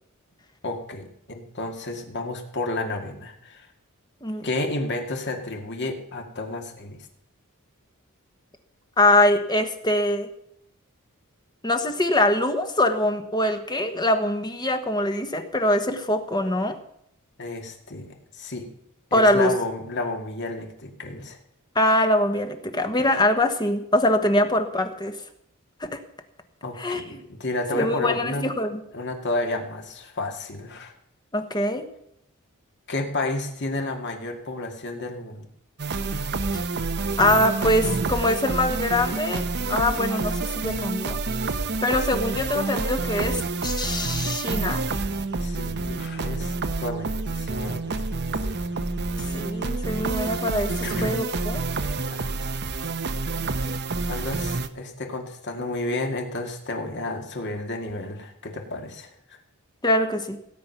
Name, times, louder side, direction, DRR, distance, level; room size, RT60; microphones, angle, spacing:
voice 1, 0.6-3.7 4.4-7.0 17.4-18.7 19.1-21.4 23.0-23.1 26.6-28.4 28.9-30.9 32.9-35.5 45.4-48.8 50.8-51.1 52.1-52.3 54.1-59.4, left 2 dB, 50° left, 3 dB, 2.2 m, -31 dB
voice 2, 9.0-10.3 11.6-16.8 19.1-19.5 21.7-25.2 25.8-26.0 26.8-27.2 27.7-28.8 31.3-31.9 37.2-39.4 39.7-41.2 41.8-44.9 49.3-50.7 51.0-51.6 59.8-60.4, left 1 dB, 20° left, 7 dB, 1.2 m, -23 dB
sound 1, 35.8-54.7, right 3 dB, 50° right, 0.9 m, -28 dB
17.0 x 9.6 x 5.9 m, 0.75 s
head